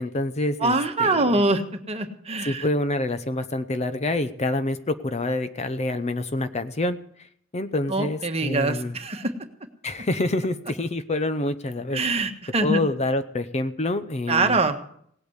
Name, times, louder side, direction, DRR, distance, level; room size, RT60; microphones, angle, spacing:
voice 1, 0.0-1.4 2.4-7.3 7.5-9.0 9.8-12.0 12.6-14.6, left 2 dB, 30° left, 11 dB, 0.7 m, -27 dB
voice 2, 0.6-1.6 1.9-2.6 7.9-9.3 11.9-12.8 14.3-14.7, right 2 dB, 30° right, 6 dB, 1.4 m, -23 dB
18.0 x 8.5 x 8.0 m, 0.65 s
head